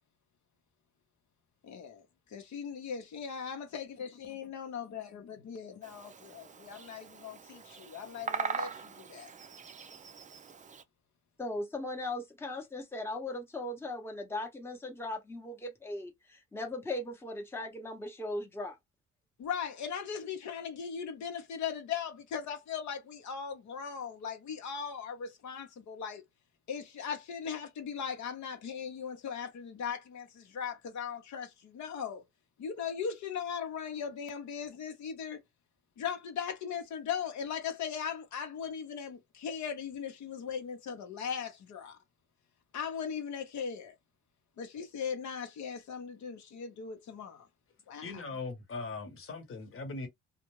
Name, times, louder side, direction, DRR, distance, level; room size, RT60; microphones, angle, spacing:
voice 1, 1.6-2.0 2.3-5.1 5.4-9.3 19.4-26.2 26.7-32.2 32.6-35.4 36.0-42.0 42.7-43.9 44.6-47.5 47.9-48.1, left 7 dB, 70° left, 0.9 m, -38 dB
Bird vocalization bird call bird song, 5.8-10.8, right 6 dB, 25° right, 0.4 m, -41 dB
voice 2, 11.4-16.1 16.5-18.8, left 2 dB, 10° left, 0.8 m, -38 dB
voice 3, 48.0-50.1, left 3 dB, 45° left, 1.1 m, -40 dB
2.4 x 2.2 x 3.0 m
cardioid pair, 90°, 30 cm